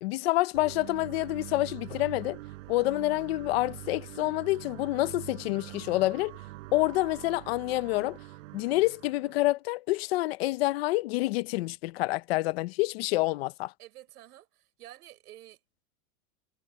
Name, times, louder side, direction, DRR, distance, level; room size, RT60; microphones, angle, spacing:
voice 1, 0.0-2.4 2.7-6.3 6.7-8.2 8.5-13.7, left 19 dB, 45° left, 0.7 m, -28 dB
sound 1, 0.5-9.5, right 19 dB, 55° right, 5.0 m, -44 dB
voice 2, 13.8-15.6, right 14 dB, 85° right, 6.3 m, -50 dB
supercardioid pair, 170°, 45 cm